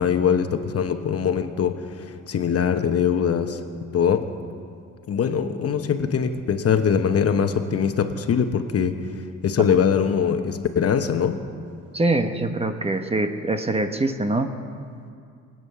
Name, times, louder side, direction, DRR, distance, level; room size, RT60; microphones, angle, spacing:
voice 1, 0.0-3.6 3.9-4.3 5.1-9.0 9.4-11.4, left 7 dB, 50° left, 7 dB, 1.1 m, -22 dB
voice 2, 11.9-14.5, right 2 dB, 20° right, 7 dB, 1.1 m, -24 dB
22.5 x 9.1 x 6.9 m, 2.3 s
cardioid pair, 90°, 30 cm